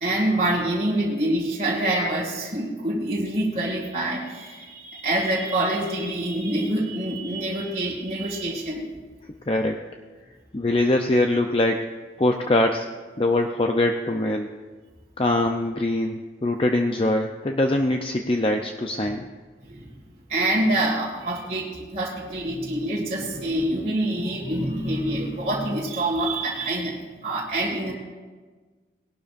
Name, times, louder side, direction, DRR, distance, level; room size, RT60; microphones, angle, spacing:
voice 1, 0.0-8.9 10.7-10.8 19.6-19.9 20.3-27.9, right 1 dB, 35° right, -5 dB, 2.1 m, -26 dB
voice 2, 9.5-9.8 10.5-11.9 12.2-12.9 13.2-14.5 15.2-19.3, left 1 dB, 30° left, 4 dB, 0.5 m, -23 dB
19.0 x 12.0 x 2.5 m, 1.4 s
head